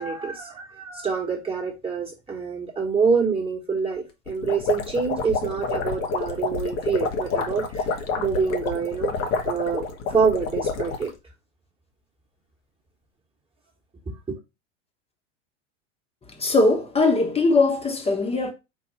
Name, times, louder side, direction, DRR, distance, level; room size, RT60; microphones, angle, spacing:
voice 1, 0.0-7.9 8.2-9.1 9.4-9.8 10.1-11.1 14.3-14.4, right 5 dB, 15° right, 1.5 m, -26 dB
sound 1, 4.3-11.1, left 4 dB, 45° left, 1.0 m, -28 dB
voice 2, 16.4-18.5, left 3 dB, 15° left, 1.2 m, -20 dB
4.7 x 2.7 x 4.1 m
hypercardioid pair, 90°, 35 cm